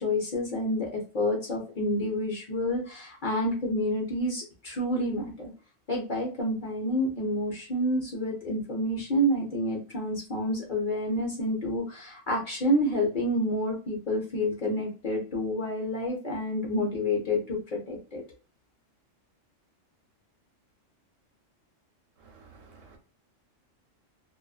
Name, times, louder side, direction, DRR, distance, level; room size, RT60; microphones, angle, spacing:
voice 1, 0.0-5.5 5.9-18.2, left 1 dB, 50° left, 0.7 m, -29 dB
voice 2, 22.2-23.0, right 4 dB, 80° right, 1.0 m, -53 dB
2.4 x 2.4 x 2.3 m
omnidirectional pair, 1.3 m